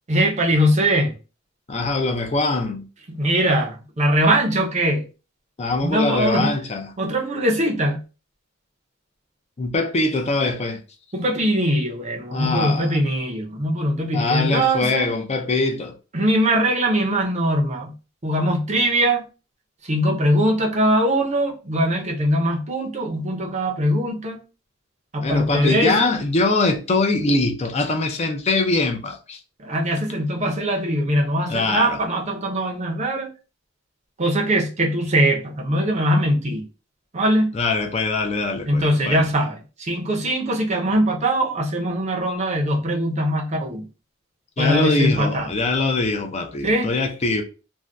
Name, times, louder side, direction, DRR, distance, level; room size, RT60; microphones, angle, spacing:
voice 1, 0.1-1.1 3.1-5.1 5.8-6.5 7.0-8.0 11.1-15.1 16.1-17.9 18.2-19.2 19.8-24.4 25.1-26.1 29.6-33.3 34.2-36.6 37.1-37.5 38.7-43.8 44.6-45.5 46.6-46.9, right 1 dB, 35° right, 0.6 m, -21 dB
voice 2, 1.7-2.9 5.6-6.9 9.6-10.8 12.3-13.0 14.1-15.9 25.2-29.4 31.5-32.0 37.5-39.3 44.6-47.4, left 3 dB, 35° left, 0.4 m, -22 dB
2.6 x 2.2 x 3.3 m
head